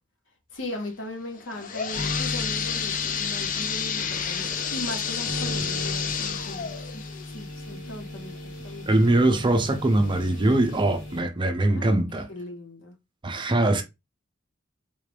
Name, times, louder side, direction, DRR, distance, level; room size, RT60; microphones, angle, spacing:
voice 1, 0.5-7.0 7.3-9.3 11.6-11.9 12.3-13.0, left 1 dB, 70° left, 1.2 m, -38 dB
sound 1, 1.3-8.9 9.4-9.5 10.3-10.4 10.8-10.9, left 7 dB, 40° left, 0.4 m, -31 dB
sound 2, 1.9-11.2, left 1 dB, 85° left, 2.2 m, -37 dB
voice 2, 8.9-12.3 13.2-13.8, right 2 dB, 25° right, 0.5 m, -22 dB
3.7 x 2.5 x 3.3 m
head